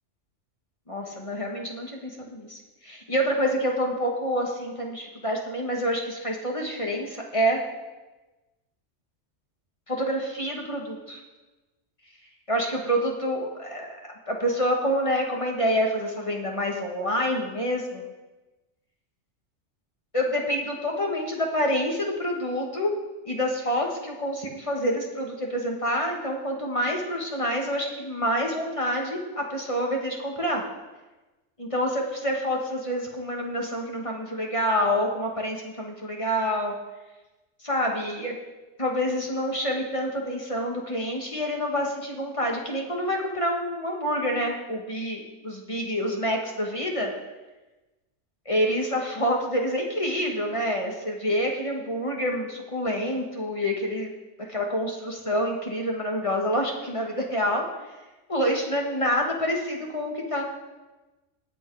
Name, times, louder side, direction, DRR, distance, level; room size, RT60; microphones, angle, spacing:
voice 1, 0.9-7.6 9.9-11.2 12.5-18.0 20.1-22.9 23.3-30.6 31.6-36.7 37.6-38.4 38.8-45.2 45.4-47.1 48.5-54.1 54.4-57.6 58.3-60.4, equal, 25° left, 0 dB, 2.0 m, -27 dB
18.0 x 8.8 x 4.9 m, 1.1 s
omnidirectional pair, 1.3 m